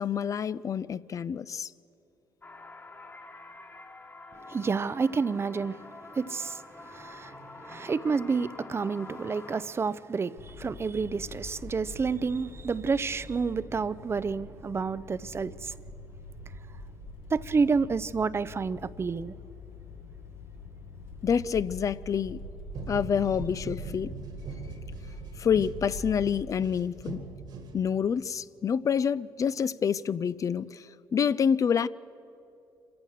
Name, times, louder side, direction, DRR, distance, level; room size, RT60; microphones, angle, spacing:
voice 1, 0.0-1.7 21.2-22.4 22.9-24.1 25.4-27.2 27.7-31.9, left 7 dB, 45° left, 0.4 m, -27 dB
sound 1, 2.4-9.6, left 2 dB, 30° left, 1.6 m, -46 dB
voice 2, 4.5-5.8 6.1-7.4 7.6-15.7 17.3-19.3, right 5 dB, 35° right, 0.6 m, -29 dB
sound 2, 10.4-26.3, left 2 dB, 85° left, 1.6 m, -44 dB
sound 3, 22.7-28.2, right 4 dB, 65° right, 2.1 m, -42 dB
26.5 x 15.0 x 6.5 m
cardioid pair, 75°, 8 cm